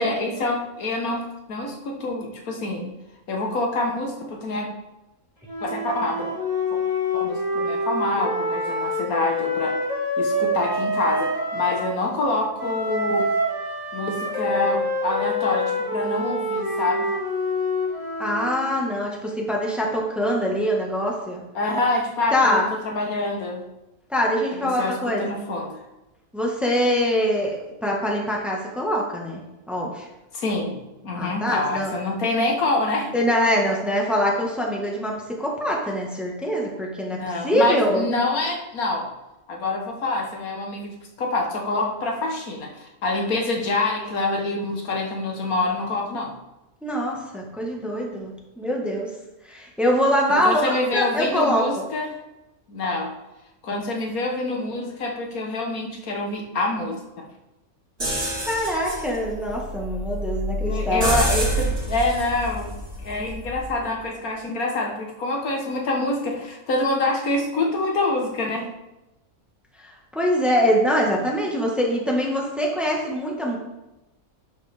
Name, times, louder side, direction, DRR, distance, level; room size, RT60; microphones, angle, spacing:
voice 1, 0.0-2.9 3.3-4.7 5.6-6.3 7.1-9.8 10.2-13.3 13.9-17.1 21.6-23.6 24.6-25.8 30.3-33.1 37.1-39.1 39.5-46.3 50.3-52.2 52.7-53.1 53.6-57.3 60.6-62.7 63.0-68.7, left 2 dB, 85° left, 1 dB, 1.8 m, -26 dB
Wind instrument woodwind instrument, 5.5-11.9 12.6-18.6, left 1 dB, 30° left, 3.5 m, -26 dB
voice 2, 18.2-21.4 22.3-22.7 24.1-25.2 26.3-29.4 29.7-30.1 31.1-31.9 33.1-38.0 46.8-49.1 49.4-51.8 58.4-61.0 69.8-73.6, equal, ahead, -2 dB, 1.4 m, -24 dB
sound 1, 58.0-63.8, right 1 dB, 65° right, 3.7 m, -27 dB
11.0 x 6.3 x 3.5 m, 0.99 s
omnidirectional pair, 1.5 m